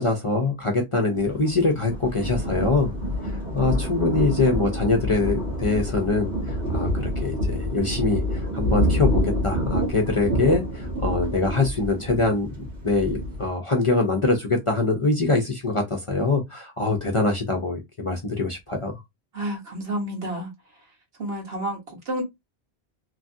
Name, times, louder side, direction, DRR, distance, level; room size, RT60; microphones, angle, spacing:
voice 1, 0.0-2.9 3.5-12.5 12.8-18.9, left 3 dB, 40° left, 0.5 m, -24 dB
Thunder, 1.1-13.5, equal, 90° right, 1.5 m, -27 dB
voice 2, 19.3-20.5 21.2-22.2, right 1 dB, 70° right, 1.4 m, -30 dB
3.1 x 2.4 x 2.6 m
omnidirectional pair, 1.1 m